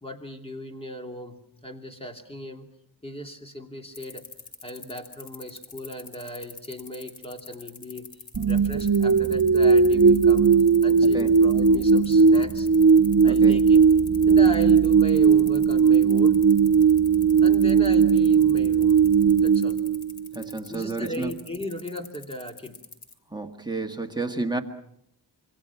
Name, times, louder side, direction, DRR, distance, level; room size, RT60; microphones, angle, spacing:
voice 1, 0.0-2.7 3.0-4.2 4.6-8.1 8.4-10.5 10.8-12.7 13.2-13.8 14.3-16.4 17.4-19.0 19.4-19.8 20.7-22.8, equal, 15° left, 2.8 m, -37 dB
sound 1, 3.9-23.1, left 4 dB, 70° left, 3.4 m, -44 dB
sound 2, 8.3-20.5, right 6 dB, 50° right, 1.3 m, -18 dB
voice 2, 13.3-13.6 20.3-21.3 23.3-24.6, right 3 dB, 10° right, 1.7 m, -31 dB
26.5 x 24.5 x 5.9 m
wide cardioid pair, 130°, 40 cm